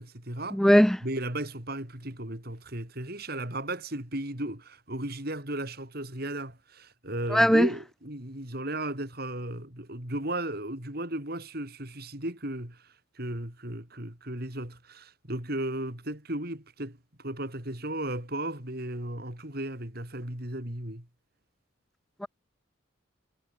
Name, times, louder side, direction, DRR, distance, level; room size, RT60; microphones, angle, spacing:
voice 1, 0.0-0.7 1.0-21.1, right 1 dB, 50° right, 4.4 m, -35 dB
voice 2, 0.5-1.0 7.3-7.7 22.2-22.3, equal, ahead, 0.4 m, -19 dB
head